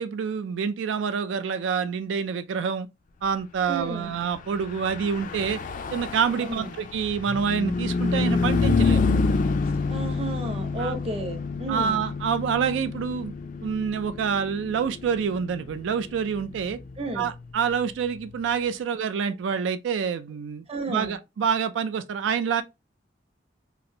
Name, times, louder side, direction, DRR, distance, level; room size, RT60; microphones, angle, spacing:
voice 1, 0.0-2.9 3.2-5.6 5.9-9.0 9.9-10.0 10.8-10.9 11.7-13.3 13.6-16.8 17.1-22.6, right 6 dB, 85° right, 0.3 m, -27 dB
voice 2, 3.7-4.1 6.4-6.7 9.9-12.0 17.0-17.3 20.7-21.2, right 2 dB, 35° right, 0.7 m, -32 dB
Car passing by / Truck, 4.5-18.2, left 4 dB, 45° left, 0.3 m, -28 dB
3.0 x 2.5 x 2.6 m
head